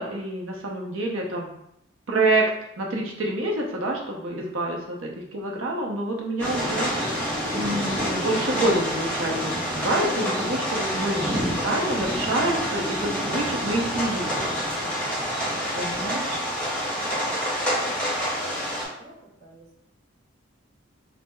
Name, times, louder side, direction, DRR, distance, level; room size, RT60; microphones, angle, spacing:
voice 1, 0.0-1.5 2.1-2.5 2.8-14.3 15.7-16.4, right 2 dB, 80° right, -1 dB, 0.7 m, -27 dB
sound 1, 6.4-18.8, equal, 5° left, 0.7 m, -27 dB
voice 2, 16.9-18.3 18.6-19.9, right 1 dB, 50° right, -5 dB, 0.9 m, -51 dB
4.5 x 2.1 x 2.2 m, 0.76 s
head